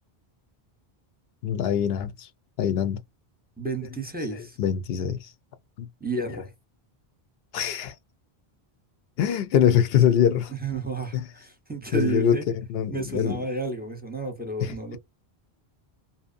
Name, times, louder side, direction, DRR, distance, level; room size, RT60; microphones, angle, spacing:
voice 1, 1.4-2.3 2.6-3.0 4.6-5.3 5.8-5.9 7.5-7.9 9.2-10.5 11.1-11.2 11.9-12.4 12.7-13.4 14.6-15.0, left 9 dB, 75° left, 0.8 m, -23 dB
voice 2, 3.6-4.6 6.0-6.5 10.5-12.5 12.9-15.0, right 2 dB, 10° right, 0.6 m, -31 dB
2.7 x 2.0 x 2.4 m
omnidirectional pair, 1.0 m